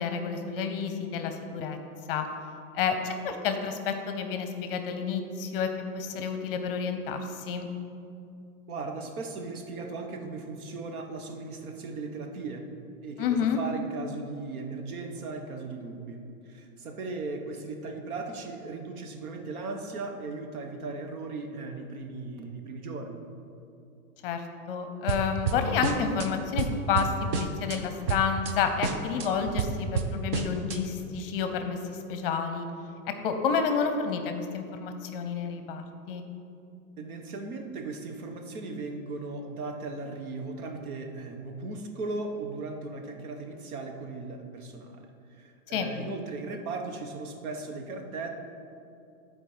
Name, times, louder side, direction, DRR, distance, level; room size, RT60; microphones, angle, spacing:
voice 1, 0.0-1.8 2.1-2.2 2.7-7.7 13.2-13.6 24.2-24.4 24.7-32.7 33.2-36.2 45.7-45.9, left 6 dB, 40° left, 6 dB, 0.6 m, -30 dB
voice 2, 8.7-12.7 13.0-23.2 37.0-48.3, right 3 dB, 80° right, 4 dB, 1.2 m, -37 dB
sound 1, 25.1-26.3 26.6-27.8 28.1-28.5 28.8-30.8, right 5 dB, 45° right, 0.6 m, -30 dB
10.5 x 4.3 x 5.0 m, 2.6 s
supercardioid pair, 160°, 43 cm